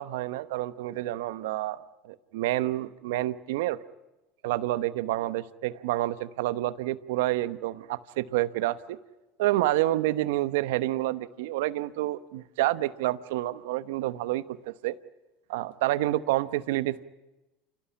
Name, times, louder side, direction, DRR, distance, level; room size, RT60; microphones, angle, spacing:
voice 1, 0.0-3.8 4.4-9.0 9.4-14.9 15.5-17.1, right 16 dB, 75° right, 14 dB, 1.0 m, -28 dB
29.0 x 16.5 x 9.9 m, 1.1 s
hypercardioid pair, 90°, 0 cm